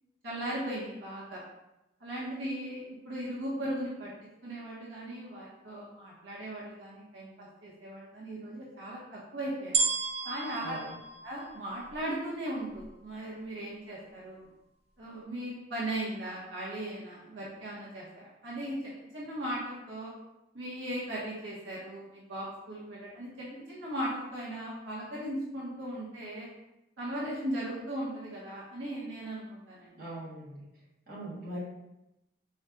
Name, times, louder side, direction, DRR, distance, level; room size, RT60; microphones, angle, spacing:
voice 1, 0.2-1.4 2.0-4.1 4.4-9.8 10.2-10.8 11.2-14.5 15.0-20.1 20.5-26.5 27.0-30.0, right 1 dB, 75° right, -7 dB, 1.1 m, -38 dB
sound 1, 9.7-12.1 12.8-12.9, right 4 dB, 30° right, 0.4 m, -32 dB
voice 2, 10.6-11.0 29.9-30.6 31.1-31.6, right 1 dB, 50° right, -7 dB, 1.5 m, -41 dB
4.7 x 4.3 x 2.3 m, 0.91 s
head